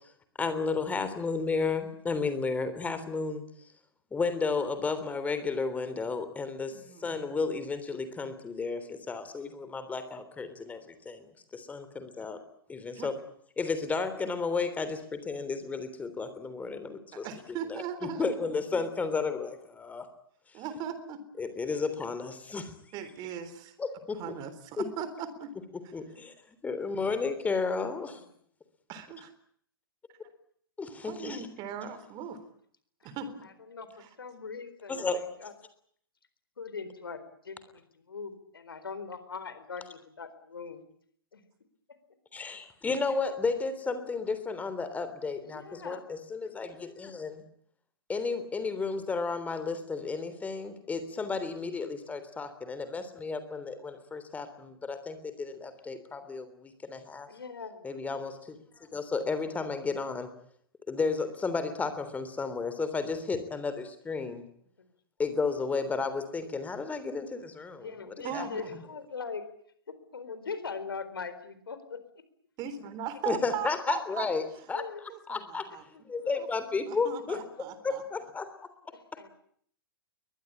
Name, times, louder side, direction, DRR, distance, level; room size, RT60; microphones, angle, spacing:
voice 1, 0.4-3.4 4.1-12.4 12.7-13.1 13.6-17.3 17.7-20.1 21.4-22.7 23.8-24.2 24.8-24.9 25.9-26.3 26.6-28.2 30.8-31.5 34.9-35.2 42.3-47.4 48.1-57.3 57.8-60.3 60.9-64.5 65.2-68.5 73.3-75.7 76.1-77.4 77.8-78.5, left 4 dB, 10° left, 11 dB, 3.5 m, -33 dB
voice 2, 6.7-7.2 12.9-13.1 17.1-18.4 18.7-18.8 20.5-21.2 22.9-23.7 24.2-25.5 28.9-29.3 30.9-32.4 33.0-33.4 34.0-34.1 68.2-68.8 72.6-74.3 75.1-75.8 76.3-76.5 76.9-78.0, right 8 dB, 35° right, 12 dB, 3.8 m, -39 dB
voice 3, 33.4-33.9 34.2-35.0 35.4-35.5 36.6-40.8 41.3-41.4 45.4-46.0 57.3-57.9 67.8-69.4 70.1-72.0 74.7-75.1 75.9-76.0 77.3-77.5 78.9-79.3, left 5 dB, 75° left, 12 dB, 4.1 m, -41 dB
22.5 x 20.0 x 10.0 m, 0.64 s
figure-of-eight pair, 110°, 12 cm